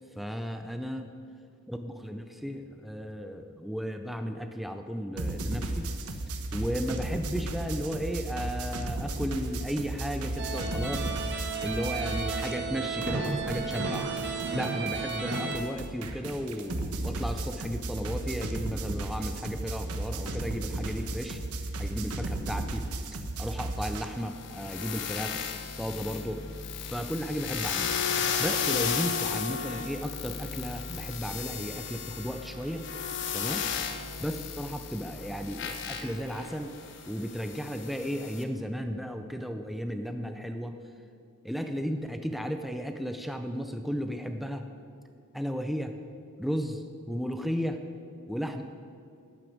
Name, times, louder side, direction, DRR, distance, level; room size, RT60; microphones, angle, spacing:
voice 1, 0.2-1.1 1.7-6.2 6.5-11.1 11.6-14.1 14.5-21.4 21.8-25.5 25.8-26.4 26.9-28.0 28.4-32.8 33.3-33.6 34.2-36.7 37.1-40.7 41.4-44.7 45.3-45.9 46.4-47.8 48.3-48.6, equal, ahead, 6 dB, 0.5 m, -34 dB
sound 1, 5.2-12.8 13.0-24.1, right 2 dB, 90° right, 1.1 m, -35 dB
sound 2, 10.4-15.6, right 4 dB, 55° right, 1.6 m, -33 dB
sound 3, 23.8-38.4, left 7 dB, 55° left, 1.0 m, -34 dB
12.0 x 6.6 x 8.6 m, 2.3 s
head